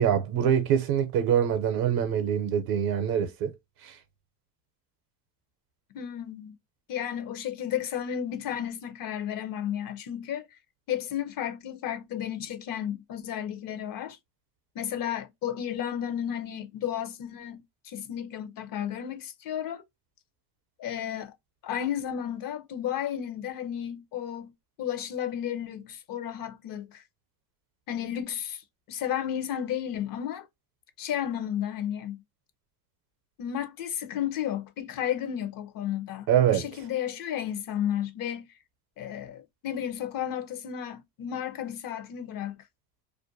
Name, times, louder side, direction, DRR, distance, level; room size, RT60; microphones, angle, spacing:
voice 1, 0.0-3.5 3.8-4.0 36.3-36.6, right 9 dB, 55° right, 0.7 m, -24 dB
voice 2, 5.9-6.6 6.9-10.5 10.9-14.2 14.7-19.8 20.8-21.3 21.6-24.5 24.8-27.0 27.9-30.5 31.0-32.2 33.4-38.5 39.0-42.6, left 10 dB, 50° left, 0.7 m, -33 dB
2.5 x 2.2 x 2.6 m
cardioid pair, 125°, 44 cm